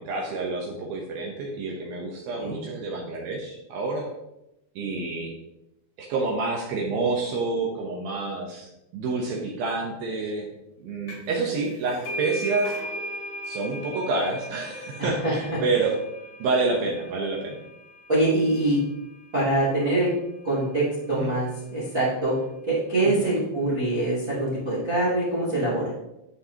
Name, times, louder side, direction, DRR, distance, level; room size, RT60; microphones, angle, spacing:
voice 1, 0.0-4.1 4.8-5.3 6.0-10.5 10.8-12.8 13.4-16.0 16.4-17.6 21.1-21.3 23.1-23.3, right 3 dB, 80° right, -1 dB, 2.1 m, -28 dB
sound 1, 11.1-11.4 11.7-19.0, equal, 40° left, 3.4 m, -37 dB
voice 2, 15.0-15.3 18.1-18.8 19.3-20.1 20.4-22.3 22.7-25.9, right 2 dB, 25° right, -7 dB, 2.2 m, -24 dB
11.5 x 5.8 x 2.9 m, 0.88 s
omnidirectional pair, 5.6 m